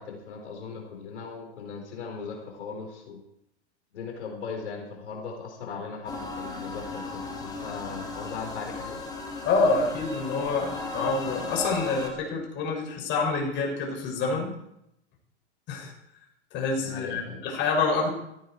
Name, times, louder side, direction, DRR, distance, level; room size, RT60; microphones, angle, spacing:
voice 1, 0.0-3.2 3.9-9.0 16.8-17.4, left 5 dB, 80° left, 2 dB, 4.4 m, -38 dB
sound 1, 6.1-12.1, left 3 dB, 10° left, 2.8 m, -36 dB
voice 2, 9.4-14.5 15.7-15.9 16.5-18.1, left 4 dB, 35° left, -1 dB, 6.6 m, -27 dB
17.0 x 14.0 x 4.6 m, 0.81 s
hypercardioid pair, 135°, 34 cm